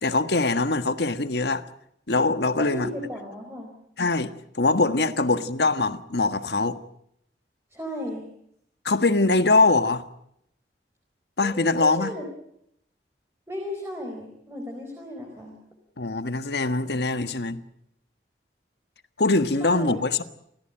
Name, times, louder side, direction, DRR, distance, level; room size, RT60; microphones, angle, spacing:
voice 1, 0.0-1.6 2.1-2.9 4.0-6.8 8.8-10.0 11.4-12.1 16.0-17.6 19.2-20.2, left 3 dB, 70° left, 1.5 m, -23 dB
voice 2, 2.6-3.7 5.0-5.2 7.7-8.3 11.4-12.2 13.5-15.6 19.6-20.0, equal, 15° right, 4.6 m, -35 dB
29.5 x 16.5 x 8.9 m
head